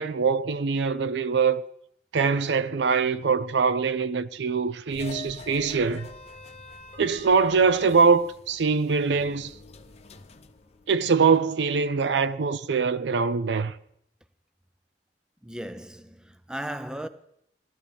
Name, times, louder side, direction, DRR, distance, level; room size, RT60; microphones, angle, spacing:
voice 1, 0.0-1.6 2.1-6.1 7.0-9.5 10.9-13.7, right 5 dB, 85° right, 0.5 m, -23 dB
sound 1, 4.9-11.4, left 2 dB, 35° left, 0.7 m, -46 dB
voice 2, 15.4-17.1, right 1 dB, 5° right, 0.5 m, -36 dB
18.5 x 12.5 x 3.5 m
head